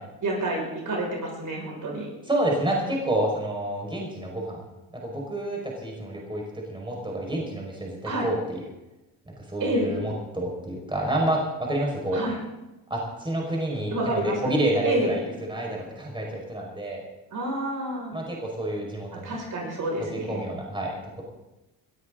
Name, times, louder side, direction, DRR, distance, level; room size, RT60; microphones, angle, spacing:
voice 1, 0.2-2.1 8.0-8.3 9.6-9.9 12.1-12.4 13.9-14.5 14.8-15.2 17.3-18.2 19.2-20.4, right 1 dB, 45° right, -1 dB, 6.2 m, -28 dB
voice 2, 2.3-4.7 4.9-8.6 9.3-12.2 12.9-15.2 15.5-17.0 18.1-19.4 20.0-21.2, right 1 dB, 10° right, -1 dB, 5.6 m, -29 dB
21.0 x 13.5 x 4.0 m, 1.0 s
hypercardioid pair, 65°, 43 cm